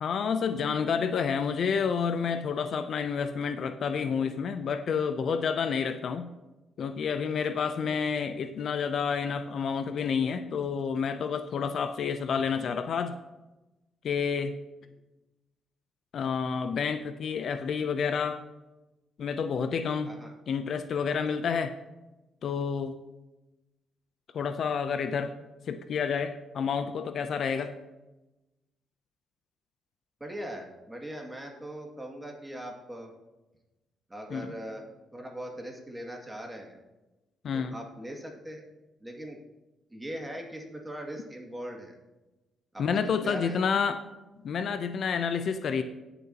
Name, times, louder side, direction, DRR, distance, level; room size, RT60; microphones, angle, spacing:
voice 1, 0.0-6.3 6.8-13.2 14.0-14.6 16.1-18.4 19.2-20.1 20.5-21.7 22.4-23.0 24.3-25.3 25.7-27.8 34.3-34.5 37.4-37.8 42.8-44.0 44.4-45.8, left 6 dB, 60° left, 10 dB, 0.6 m, -29 dB
voice 2, 20.0-20.3 30.2-33.1 34.1-34.8 35.1-36.8 37.5-38.7 39.0-39.4 39.9-42.0 42.7-43.6, right 1 dB, 15° right, 1 dB, 2.2 m, -40 dB
18.5 x 6.9 x 2.9 m, 1.0 s
cardioid pair, 90°, 0 cm